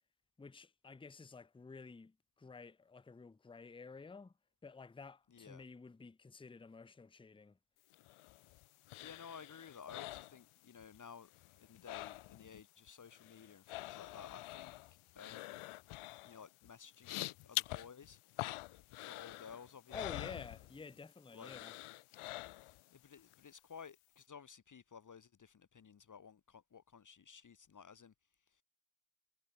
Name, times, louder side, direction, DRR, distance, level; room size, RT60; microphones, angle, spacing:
voice 1, 0.4-4.3 4.6-7.6 19.9-21.7, left 4 dB, 10° left, 0.6 m, -51 dB
voice 2, 5.3-5.6 9.0-11.3 11.6-14.7 15.1-15.7 16.2-18.2 18.9-20.3 21.3-21.5 22.7-28.1, left 6 dB, 40° left, 1.0 m, -55 dB
sound 1, 7.9-11.0 11.2-12.6 12.9-21.0 21.4-22.9 23.3-23.4, left 18 dB, 80° left, 0.6 m, -46 dB
cardioid pair, 65°, 50 cm